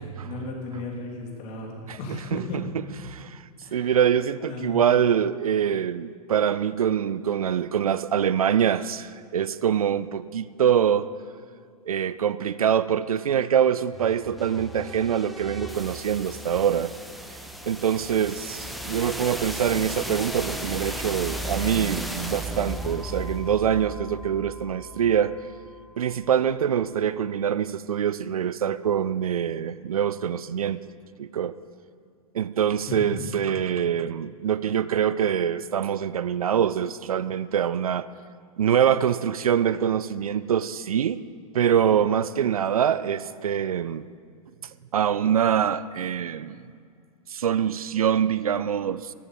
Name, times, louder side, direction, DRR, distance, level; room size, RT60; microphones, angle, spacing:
voice 1, 0.0-2.8 3.6-4.0 4.4-4.9 32.9-33.4, left 2 dB, 35° left, 0 dB, 3.5 m, -35 dB
voice 2, 3.1-3.4 3.7-11.1 11.9-16.9 17.7-25.3 26.0-30.8 31.2-31.6 32.3-38.1 38.6-41.2 41.5-44.0 44.9-46.6 47.3-49.1, right 9 dB, 65° right, 16 dB, 0.5 m, -24 dB
sound 1, 13.9-25.8, right 1 dB, ahead, 0.9 m, -35 dB
14.0 x 12.0 x 7.7 m, 2.2 s
figure-of-eight pair, 100°, 20 cm